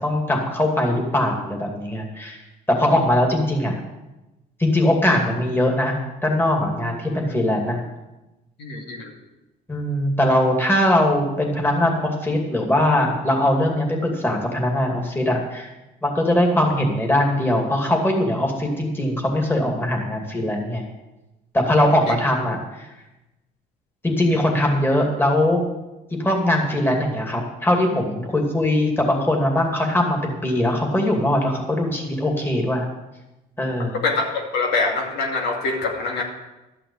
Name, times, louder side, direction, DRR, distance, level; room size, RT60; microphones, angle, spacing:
voice 1, 0.0-2.4 2.7-3.8 4.6-5.9 6.2-7.8 9.7-15.7 16.0-20.8 21.5-22.9 24.0-25.6 26.2-32.9 33.6-34.0, left 1 dB, 15° left, 1 dB, 2.5 m, -21 dB
voice 2, 8.6-9.1 22.1-22.2 34.0-36.2, left 3 dB, 80° left, 0 dB, 2.4 m, -24 dB
12.5 x 5.9 x 8.5 m, 1.0 s
cardioid pair, 110°, 17 cm